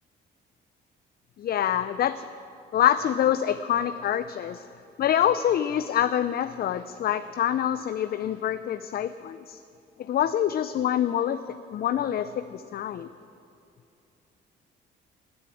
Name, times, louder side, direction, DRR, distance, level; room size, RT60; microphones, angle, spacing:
voice 1, 1.4-2.3 2.7-4.6 5.0-9.6 10.0-11.4 11.7-13.1, left 10 dB, 50° left, 12 dB, 0.4 m, -26 dB
9.6 x 9.4 x 9.8 m, 2.6 s
cardioid pair, 90°, 20 cm